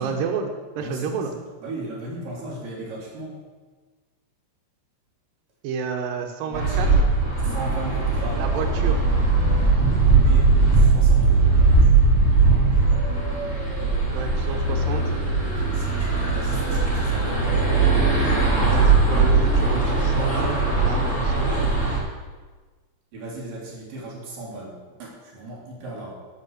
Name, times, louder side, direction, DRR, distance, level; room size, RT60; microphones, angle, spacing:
voice 1, 0.0-1.3 5.6-6.9 8.4-9.0 14.0-15.1 18.7-21.5, right 6 dB, 90° right, 4 dB, 2.0 m, -30 dB
voice 2, 0.8-1.3 1.6-3.4 6.5-7.0 7.4-8.4 10.2-12.0 15.4-17.8 23.1-26.1, right 1 dB, 45° right, -4 dB, 4.7 m, -36 dB
sound 1, 6.5-22.0, right 3 dB, 15° left, 4.0 m, -19 dB
13.5 x 5.9 x 8.0 m, 1.4 s
omnidirectional pair, 5.8 m